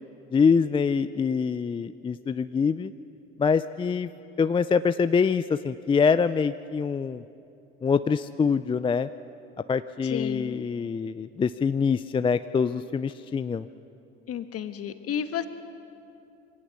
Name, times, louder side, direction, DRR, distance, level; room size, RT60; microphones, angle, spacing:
voice 1, 0.3-2.9 3.4-4.1 4.4-7.2 7.8-9.1 9.7-13.7, left 5 dB, 15° left, 12 dB, 0.4 m, -24 dB
voice 2, 10.0-10.6 14.3-15.5, left 9 dB, 45° left, 9 dB, 1.4 m, -32 dB
22.5 x 17.5 x 7.0 m, 2.7 s
hypercardioid pair, 75°, 34 cm